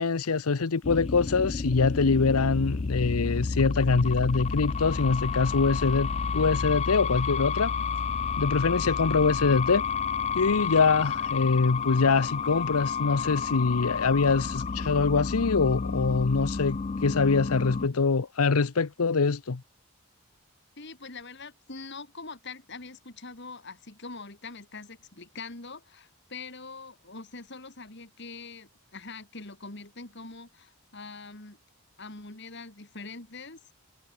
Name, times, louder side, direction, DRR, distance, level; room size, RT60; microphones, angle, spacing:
voice 1, 0.0-6.1 6.3-7.7 8.4-9.8 10.3-19.6, left 4 dB, 85° left, 0.8 m, -24 dB
sound 1, 0.8-17.9, left 5 dB, 30° left, 0.3 m, -31 dB
voice 2, 20.8-31.6 32.0-33.7, left 3 dB, 50° left, 2.6 m, -43 dB
head